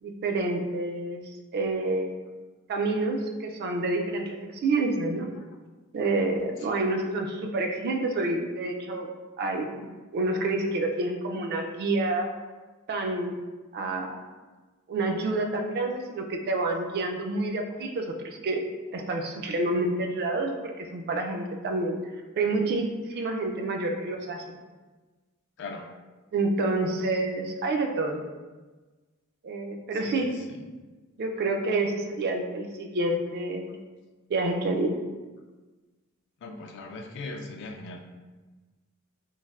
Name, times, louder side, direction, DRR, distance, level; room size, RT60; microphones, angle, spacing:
voice 1, 0.0-1.2 1.5-2.2 2.7-5.3 5.9-9.1 9.4-12.3 12.9-13.4 13.7-14.1 14.9-18.6 18.9-22.0 22.4-24.4 26.3-28.2 29.4-30.3 31.2-33.7 34.3-35.0, right 2 dB, 50° right, 3 dB, 0.3 m, -28 dB
voice 2, 25.6-25.9 29.9-30.6 36.4-38.0, left 3 dB, 55° left, 3 dB, 0.3 m, -40 dB
3.2 x 2.5 x 2.3 m, 1.3 s
head